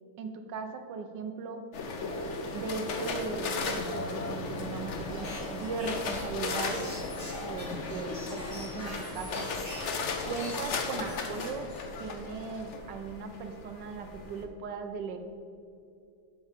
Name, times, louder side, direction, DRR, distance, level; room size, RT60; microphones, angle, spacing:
voice 1, 0.2-1.6 2.5-6.9 7.4-9.5 10.3-11.7 12.0-15.2, right 5 dB, 65° right, 6 dB, 1.4 m, -38 dB
sound 1, 1.7-14.4, left 3 dB, 70° left, 0.6 m, -36 dB
sound 2, 5.1-10.1 10.4-12.0, left 1 dB, 35° left, 2.1 m, -43 dB
12.0 x 5.6 x 5.1 m, 2.5 s
omnidirectional pair, 2.3 m